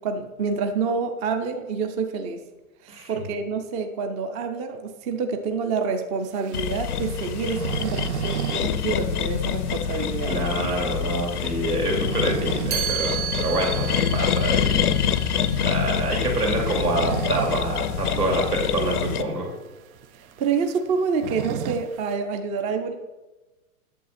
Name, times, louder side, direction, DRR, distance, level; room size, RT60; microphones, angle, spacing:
voice 1, 0.0-2.4 2.8-10.4 18.7-19.2 20.1-22.9, right 5 dB, 15° right, 6 dB, 0.4 m, -28 dB
voice 2, 2.9-3.2 10.3-14.8 15.6-19.5, right 1 dB, 90° right, -1 dB, 2.7 m, -26 dB
sound 1, 6.3-8.7 9.0-9.1 9.5-9.6 10.1-10.2 11.7-12.9 13.3-13.4 15.0-15.2 16.4-17.7 18.0-18.1 18.4-18.5 19.2-19.3 19.5-22.1, right 10 dB, 70° right, 0.5 m, -32 dB
sound 2, 6.5-19.2, left 8 dB, 80° left, 0.7 m, -26 dB
Chime, 12.7-18.6, right 12 dB, 55° right, 1.6 m, -34 dB
8.5 x 7.1 x 4.1 m, 1.1 s
hypercardioid pair, 115°, 44 cm